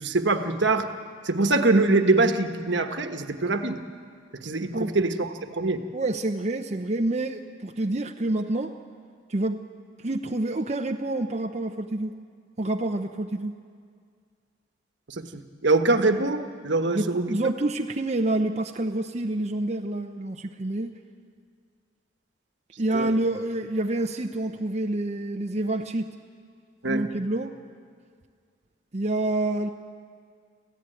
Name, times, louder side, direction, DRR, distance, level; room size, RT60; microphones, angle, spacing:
voice 1, 0.0-0.9 1.2-3.8 4.4-5.8 15.2-17.3 22.9-23.1 26.8-27.1, right 2 dB, 65° right, 7 dB, 1.3 m, -23 dB
voice 2, 5.9-8.7 9.3-9.6 10.0-12.1 12.6-13.5 16.9-20.9 22.8-26.1 26.9-27.5 28.9-29.7, right 2 dB, 35° right, 4 dB, 0.7 m, -27 dB
27.0 x 15.0 x 9.1 m, 2.1 s
head